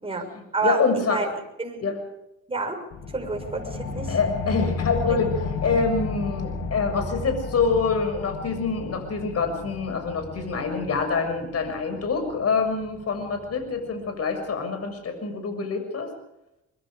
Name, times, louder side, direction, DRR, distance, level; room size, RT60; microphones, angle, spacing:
voice 1, 0.0-1.3 1.6-1.9 2.5-2.8 3.1-4.2, right 4 dB, 20° right, 3 dB, 6.2 m, -29 dB
voice 2, 0.6-1.3 1.8-2.0 4.1-5.4 5.6-16.1, left 4 dB, 55° left, 6 dB, 6.8 m, -26 dB
sound 1, 2.9-14.0, left 3 dB, 85° left, 4.1 m, -33 dB
24.0 x 24.0 x 5.1 m, 0.86 s
cardioid pair, 90°, 30 cm